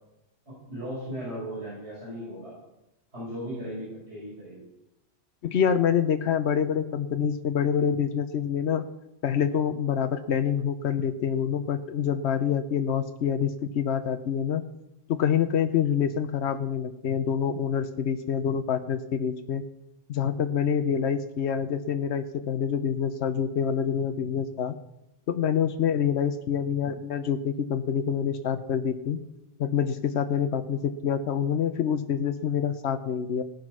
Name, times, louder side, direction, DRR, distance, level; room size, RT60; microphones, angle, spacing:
voice 1, 0.7-2.5 3.1-4.6, equal, 85° right, -8 dB, 6.6 m, -36 dB
voice 2, 5.4-8.8 9.2-14.6 15.1-19.6 20.1-24.7 25.3-29.2 29.6-33.4, left 8 dB, 80° left, 9 dB, 1.1 m, -26 dB
17.5 x 9.5 x 6.2 m, 0.91 s
omnidirectional pair, 1.1 m